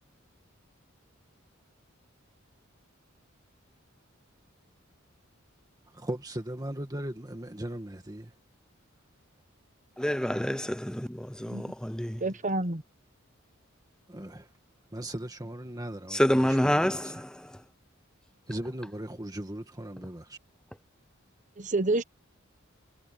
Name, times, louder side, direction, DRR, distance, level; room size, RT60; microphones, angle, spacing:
voice 1, 5.9-8.3 14.1-14.5 14.9-17.2 18.5-20.4, right 1 dB, 20° right, 2.1 m, -38 dB
voice 2, 10.0-12.2 16.1-17.3, equal, 5° left, 0.8 m, -27 dB
voice 3, 12.2-12.8 21.6-22.0, right 2 dB, 40° right, 1.2 m, -28 dB
head